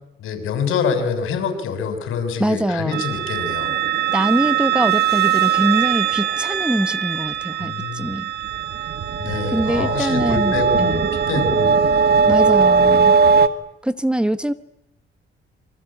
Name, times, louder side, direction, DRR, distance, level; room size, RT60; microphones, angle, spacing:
voice 1, 0.2-3.8 7.6-8.2 9.2-12.2 12.9-13.1, left 6 dB, 80° left, 8 dB, 6.7 m, -26 dB
voice 2, 2.4-3.0 4.1-8.3 9.5-11.1 12.3-13.1 13.8-14.5, right 1 dB, 5° right, 13 dB, 1.0 m, -23 dB
sound 1, 2.9-13.5, right 6 dB, 50° right, 1.7 m, -19 dB
27.0 x 24.5 x 8.9 m, 0.82 s
cardioid pair, 155°, 21 cm